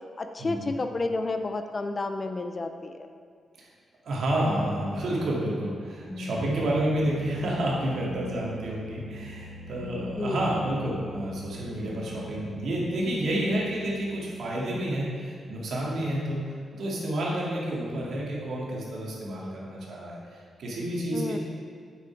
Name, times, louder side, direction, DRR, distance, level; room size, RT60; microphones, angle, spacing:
voice 1, 0.2-3.1 10.0-10.4 21.1-21.4, left 3 dB, 30° left, 7 dB, 0.5 m, -31 dB
voice 2, 4.0-16.4 16.7-21.4, right 1 dB, 65° right, -4 dB, 2.4 m, -30 dB
sound 1, 5.9-14.7, equal, 10° left, 1.4 m, -42 dB
9.4 x 7.6 x 4.6 m, 2.1 s
wide cardioid pair, 165°, 0 cm